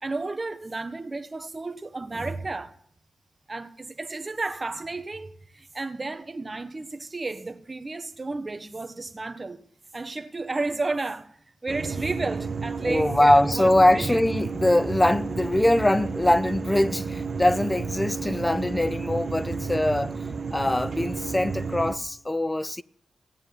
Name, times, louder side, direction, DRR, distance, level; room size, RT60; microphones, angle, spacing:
voice 1, 0.0-2.7 3.5-9.6 9.9-11.3 11.6-14.2, right 3 dB, 30° right, 1.3 m, -32 dB
sound 1, 11.7-21.9, right 5 dB, 50° right, 1.3 m, -32 dB
voice 2, 12.8-20.2 20.5-22.8, left 1 dB, 15° left, 0.5 m, -22 dB
17.0 x 8.5 x 9.4 m
wide cardioid pair, 90°, 0 cm